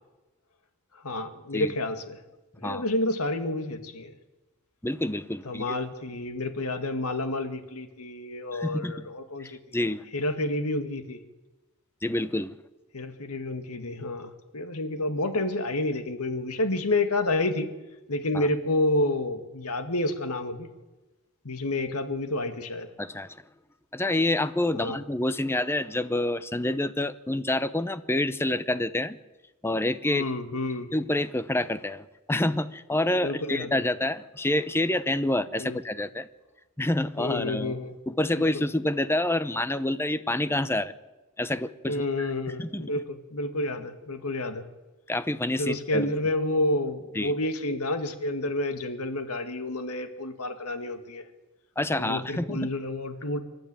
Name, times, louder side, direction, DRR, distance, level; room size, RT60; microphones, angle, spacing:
voice 1, 1.0-2.2 2.6-4.1 5.4-9.6 10.1-11.2 12.9-17.7 18.1-20.7 21.4-22.9 24.7-25.0 30.1-30.9 33.2-33.8 35.6-35.8 37.2-38.0 38.3-38.6 41.9-44.7 45.6-51.3 51.9-53.4, left 2 dB, 80° left, 8 dB, 2.0 m, -29 dB
voice 2, 4.8-5.7 8.5-9.1 9.4-10.0 12.0-12.6 18.3-18.5 23.0-23.4 23.9-29.2 29.6-30.2 30.9-36.3 36.8-37.8 38.1-40.9 41.4-42.3 42.6-42.8 45.1-46.1 47.2-47.3 51.8-52.7, left 1 dB, 10° left, 14 dB, 0.7 m, -27 dB
26.0 x 12.0 x 9.0 m, 1.1 s
head